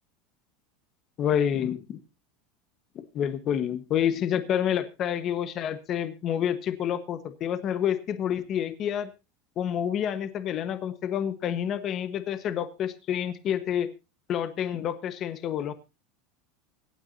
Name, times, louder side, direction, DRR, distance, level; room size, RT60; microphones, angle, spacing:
voice 1, 1.2-2.0 2.9-9.1 9.6-13.9 14.3-15.7, left 9 dB, 35° left, 11 dB, 1.3 m, -28 dB
25.0 x 9.1 x 2.8 m, 0.28 s
supercardioid pair, 145°, 0 cm